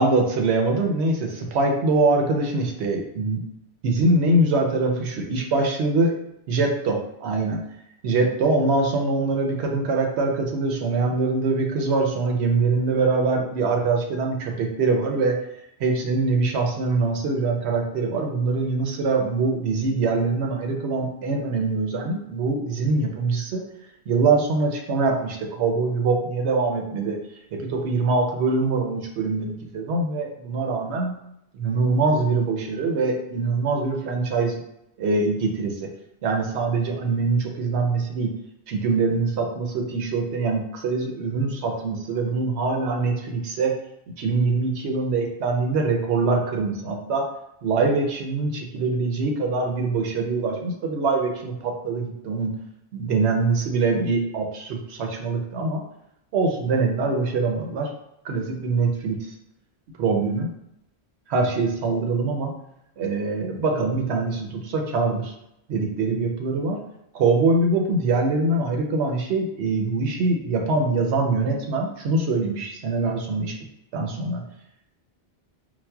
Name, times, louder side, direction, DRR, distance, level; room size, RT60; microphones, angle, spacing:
voice 1, 0.0-3.4 3.8-6.2 6.5-7.6 8.0-15.4 15.8-23.6 24.1-27.2 27.5-31.2 31.5-34.6 35.0-35.9 36.2-38.3 38.7-43.7 44.2-47.2 47.6-52.5 52.9-55.8 56.3-57.9 58.2-59.3 60.0-60.5 61.3-62.5 63.0-65.3 65.7-66.8 67.1-73.5 73.9-74.4, right 3 dB, 85° right, 1 dB, 0.9 m, -23 dB
4.1 x 2.1 x 2.2 m, 0.82 s
omnidirectional pair, 1.1 m